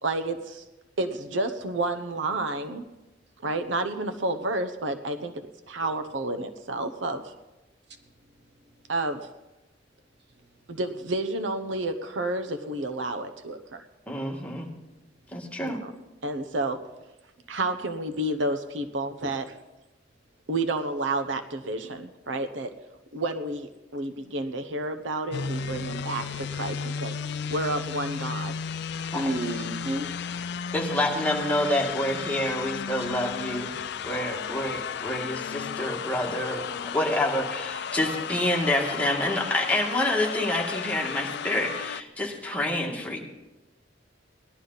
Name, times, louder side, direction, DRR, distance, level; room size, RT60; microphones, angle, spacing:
voice 1, 0.0-0.6 1.0-2.8 3.4-7.3 8.9-9.3 10.7-13.8 15.6-15.9 16.2-16.8 17.5-19.6 20.5-22.7 23.1-27.1 27.5-28.5 30.0-30.1, right 2 dB, 85° right, 7 dB, 0.9 m, -30 dB
voice 2, 14.1-14.7 15.3-15.8 29.1-29.3 30.7-43.2, left 1 dB, 10° left, -1 dB, 1.9 m, -28 dB
sound 1, 25.3-42.0, left 7 dB, 65° left, 0.4 m, -34 dB
voice 3, 29.1-30.1, right 1 dB, 65° right, 6 dB, 1.3 m, -30 dB
18.0 x 11.5 x 4.0 m, 1.0 s
head